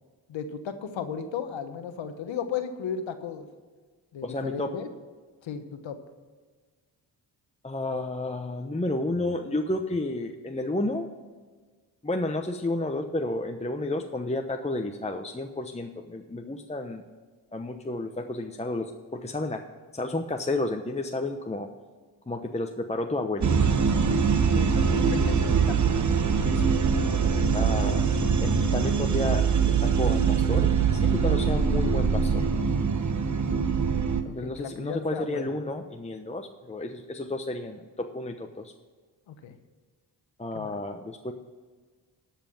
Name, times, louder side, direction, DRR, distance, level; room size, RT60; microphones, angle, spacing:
voice 1, 0.3-3.5 4.1-4.9 5.4-6.0 24.3-25.9 27.8-28.0 34.2-35.6 39.3-39.5 40.5-40.7, left 7 dB, 85° left, 8 dB, 1.1 m, -35 dB
voice 2, 4.2-4.7 7.6-11.1 12.0-17.0 17.5-19.6 19.9-21.7 22.3-23.8 26.4-26.8 27.5-28.1 28.4-29.4 29.8-32.5 34.2-38.7 40.4-41.3, left 2 dB, 15° left, 4 dB, 0.9 m, -31 dB
sound 1, 23.4-34.2, right 6 dB, 40° right, 1.1 m, -23 dB
12.5 x 5.8 x 7.1 m, 1.4 s
cardioid pair, 50°, 45 cm